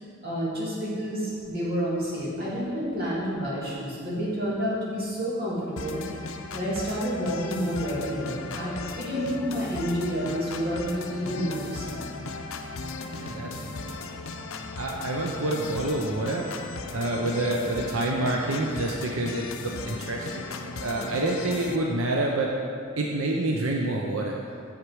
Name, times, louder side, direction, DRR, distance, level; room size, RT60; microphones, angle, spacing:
voice 1, 0.2-6.0 6.5-12.0, equal, 45° right, -7 dB, 2.4 m, -29 dB
sound 1, 5.8-21.8, left 3 dB, 80° left, 0.7 m, -37 dB
voice 2, 13.2-14.0 14.8-16.5 16.9-22.5 23.0-24.4, right 2 dB, 85° right, -1 dB, 0.7 m, -28 dB
8.2 x 7.4 x 4.7 m, 2.4 s
head